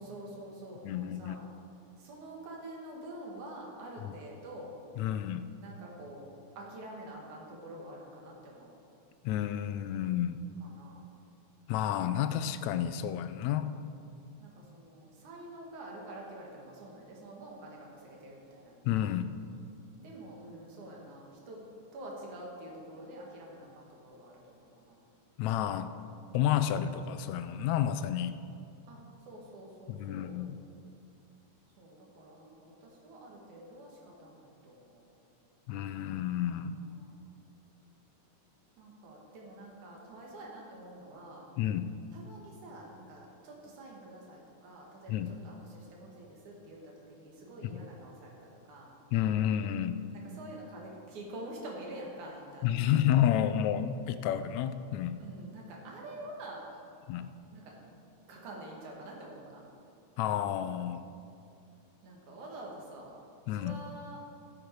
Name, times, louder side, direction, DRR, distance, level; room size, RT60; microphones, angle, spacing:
voice 1, 0.0-1.4 2.0-4.7 5.6-6.2 6.6-8.7 10.6-11.1 14.4-18.7 20.0-21.6 21.9-25.0 28.9-29.0 29.3-30.4 31.8-35.1 36.8-37.1 38.8-41.4 42.1-48.9 50.2-53.1 55.2-56.8 57.5-57.7 58.3-59.6 62.0-63.2 63.5-64.2, right 1 dB, 75° right, -2 dB, 3.3 m, -47 dB
voice 2, 0.8-1.4 5.0-5.5 9.2-10.4 11.7-13.7 18.8-19.3 25.4-25.9 26.3-28.4 29.9-30.6 35.7-36.8 41.6-41.9 45.1-45.3 47.6-47.8 49.1-50.0 52.6-55.2 57.1-57.3 60.2-61.0 63.5-63.8, left 10 dB, 80° left, 11 dB, 1.7 m, -30 dB
15.0 x 8.7 x 4.7 m, 2.5 s
omnidirectional pair, 3.4 m